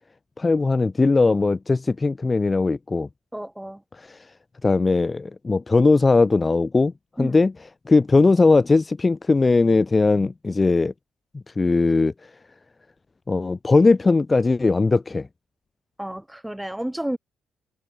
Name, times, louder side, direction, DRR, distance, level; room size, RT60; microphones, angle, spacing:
voice 1, 0.4-3.1 4.0-4.2 4.6-6.9 7.2-7.5 7.9-10.9 11.6-12.1 13.3-15.3, left 3 dB, 25° left, 0.4 m, -19 dB
voice 2, 3.3-3.8 7.2-7.4 16.0-17.2, right 1 dB, 5° right, 2.2 m, -31 dB
cardioid pair, 90°, 0 cm